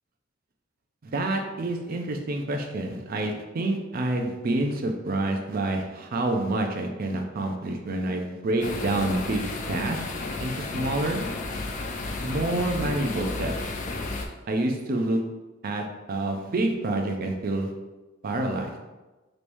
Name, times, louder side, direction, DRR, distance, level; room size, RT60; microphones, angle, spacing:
voice 1, 1.0-10.0 10.4-11.2 12.2-13.5 14.5-15.2 15.6-17.7 18.2-18.8, right 2 dB, 50° right, 3 dB, 0.4 m, -28 dB
sound 1, 8.6-14.3, left 3 dB, 40° left, 0.3 m, -32 dB
3.3 x 3.1 x 2.6 m, 1.1 s
head